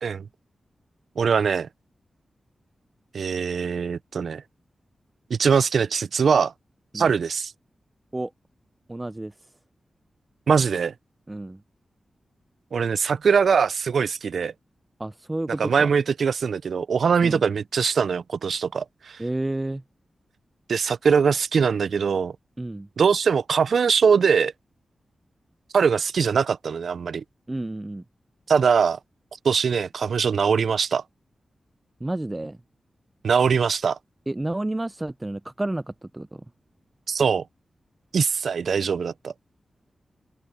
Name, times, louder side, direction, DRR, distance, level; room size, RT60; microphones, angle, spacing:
voice 1, 1.2-1.7 3.1-4.4 5.3-6.5 6.9-7.5 10.5-10.9 12.7-14.5 15.5-19.2 20.7-22.3 23.0-24.5 25.7-27.2 28.5-29.0 29.4-31.0 33.2-34.0 37.1-37.4 38.1-39.3, right 6 dB, 80° right, 0.4 m, -22 dB
voice 2, 8.9-9.3 11.3-11.6 15.0-15.9 17.2-17.4 19.2-19.8 22.6-22.9 27.5-28.0 32.0-32.6 34.3-36.4, right 1 dB, 20° right, 0.5 m, -30 dB
open air
cardioid pair, 70°, 0 cm